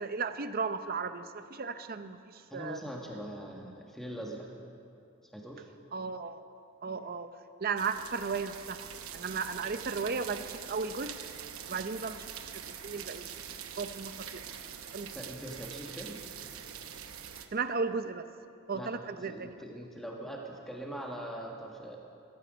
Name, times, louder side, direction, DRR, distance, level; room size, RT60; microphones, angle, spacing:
voice 1, 0.0-2.2 2.5-2.8 5.9-6.4 6.8-7.3 7.6-8.8 9.1-11.1 11.7-13.4 13.8-14.4 14.9-15.1 17.5-18.3 18.7-19.6, right 5 dB, 45° right, 10 dB, 0.6 m, -35 dB
voice 2, 2.5-4.5 5.2-5.7 15.1-16.2 18.7-22.0, right 1 dB, ahead, -1 dB, 1.6 m, -42 dB
sound 1, 7.8-17.5, right 8 dB, 75° right, 0.9 m, -44 dB
16.0 x 15.0 x 5.2 m, 2.6 s
head